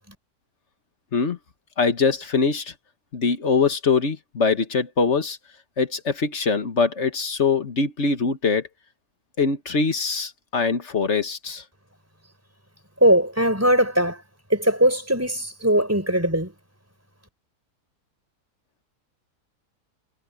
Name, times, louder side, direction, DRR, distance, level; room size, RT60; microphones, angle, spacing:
voice 1, 1.8-2.7 3.1-5.4 5.8-8.7 9.4-11.6, left 4 dB, 50° left, 1.7 m, -23 dB
voice 2, 13.0-14.2 14.5-16.5, right 1 dB, 10° right, 5.3 m, -20 dB
omnidirectional pair, 1.7 m